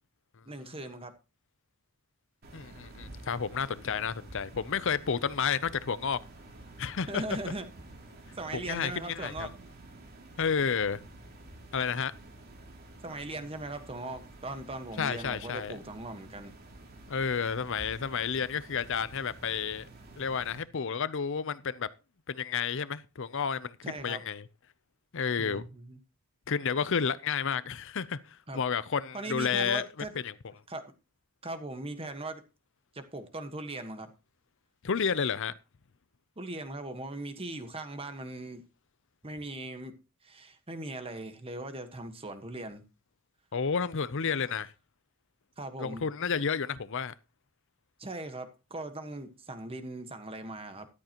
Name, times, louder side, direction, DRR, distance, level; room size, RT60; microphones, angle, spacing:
voice 1, 0.5-1.1 7.1-7.7 8.4-9.5 13.0-16.5 23.8-24.2 25.4-26.0 28.5-28.6 29.1-30.1 30.7-30.9 31.4-32.4 32.9-34.1 36.4-38.6 39.2-40.0 40.2-42.8 45.6-46.0 48.0-50.9, right 2 dB, 25° right, 1.4 m, -39 dB
sound 1, 2.4-20.6, right 2 dB, 45° right, 3.0 m, -50 dB
voice 2, 2.5-6.2 6.8-7.4 8.5-9.5 10.4-11.0 11.7-12.1 15.0-15.8 17.1-19.9 20.2-21.9 22.3-24.5 25.1-25.6 26.5-29.8 30.2-30.3 34.8-35.5 43.5-44.7 45.8-47.1, left 6 dB, 60° left, 0.6 m, -31 dB
14.0 x 12.0 x 3.0 m
head